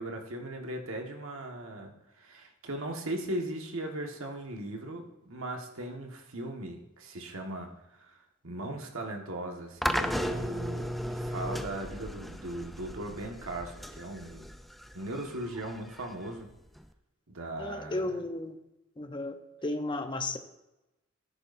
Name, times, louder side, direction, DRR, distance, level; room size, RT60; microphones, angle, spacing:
voice 1, 0.0-8.1 8.4-14.4 14.9-16.5 17.3-18.2, right 1 dB, 85° right, 1.6 m, -38 dB
sound 1, 9.8-16.9, equal, ahead, 0.4 m, -36 dB
voice 2, 17.6-18.6 19.0-19.4 19.6-20.4, left 2 dB, 25° left, 0.7 m, -33 dB
13.5 x 10.5 x 2.6 m
head